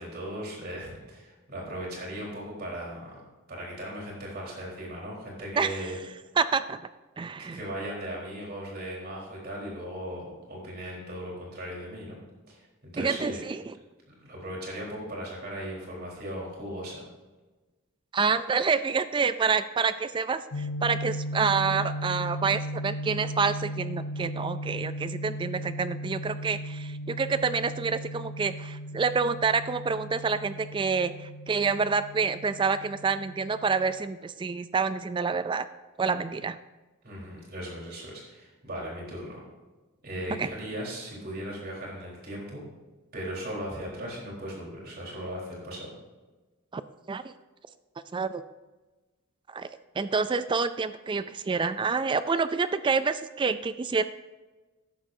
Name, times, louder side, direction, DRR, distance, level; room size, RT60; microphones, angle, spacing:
voice 1, 0.0-3.2 3.5-6.0 7.5-12.2 12.5-13.4 14.1-17.0 37.0-39.4 40.0-42.7 43.1-45.9, equal, 45° right, -3 dB, 4.0 m, -38 dB
voice 2, 5.6-5.9 6.4-6.8 7.2-7.6 13.0-13.7 18.1-35.7 36.0-36.6 40.4-40.5 46.7-46.8 47.1-47.3 48.1-48.4 49.5-49.7 50.0-54.0, right 5 dB, 20° right, 13 dB, 0.3 m, -28 dB
sound 1, 20.5-34.0, equal, 80° left, 0.7 m, -36 dB
13.5 x 11.0 x 2.7 m, 1.2 s
head